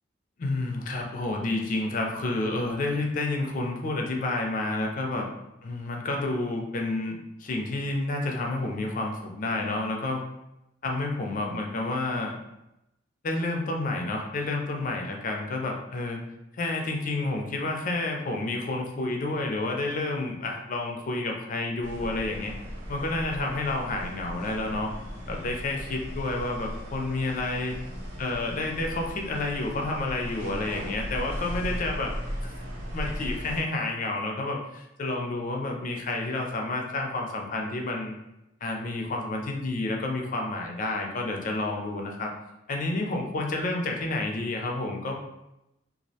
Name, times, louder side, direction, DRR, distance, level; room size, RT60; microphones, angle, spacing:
voice 1, 0.4-5.3 5.6-10.2 10.8-12.3 13.2-16.2 16.5-22.5 22.9-24.9 25.3-27.8 28.2-32.1 32.4-32.5 32.9-38.2 38.6-42.3 42.7-45.1, left 2 dB, 45° left, 1 dB, 0.4 m, -30 dB
sound 1, 21.8-33.6, equal, 80° right, 0.8 m, -37 dB
2.3 x 2.0 x 2.7 m, 0.91 s
head